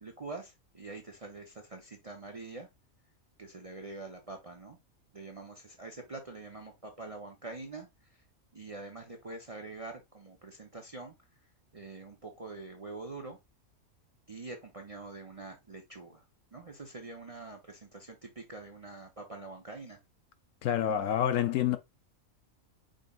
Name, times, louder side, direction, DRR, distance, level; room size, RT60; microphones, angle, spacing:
voice 1, 0.0-2.7 3.4-4.8 5.1-7.9 8.5-11.1 11.7-13.4 14.3-16.2 16.5-20.0, right 3 dB, 35° right, 0.6 m, -45 dB
voice 2, 20.6-21.8, left 10 dB, 70° left, 0.9 m, -27 dB
5.2 x 3.9 x 2.3 m
omnidirectional pair, 1.5 m